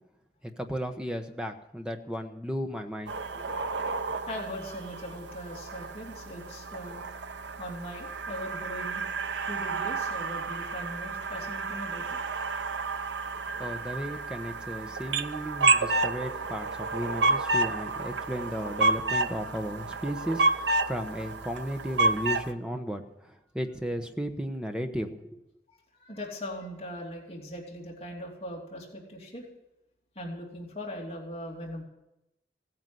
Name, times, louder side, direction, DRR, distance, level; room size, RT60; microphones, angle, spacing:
voice 1, 0.6-3.1 13.6-25.4, equal, 5° right, 5 dB, 1.1 m, -34 dB
sound 1, 3.1-22.5, right 3 dB, 90° right, 0.8 m, -30 dB
voice 2, 4.3-7.0 7.6-9.0 9.5-12.2 25.7-29.4 30.1-31.8, equal, 35° left, -2 dB, 2.9 m, -40 dB
17.0 x 9.6 x 7.9 m, 0.88 s
head